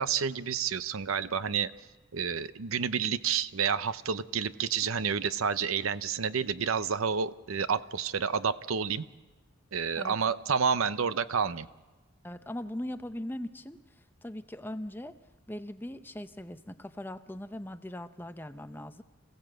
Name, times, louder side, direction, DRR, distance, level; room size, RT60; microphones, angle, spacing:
voice 1, 0.0-1.7 2.1-9.1 9.7-11.7, right 6 dB, 80° right, 15 dB, 0.7 m, -29 dB
voice 2, 12.2-15.2 15.5-19.0, left 1 dB, 10° left, 10 dB, 0.6 m, -40 dB
27.5 x 16.5 x 7.8 m, 1.2 s
head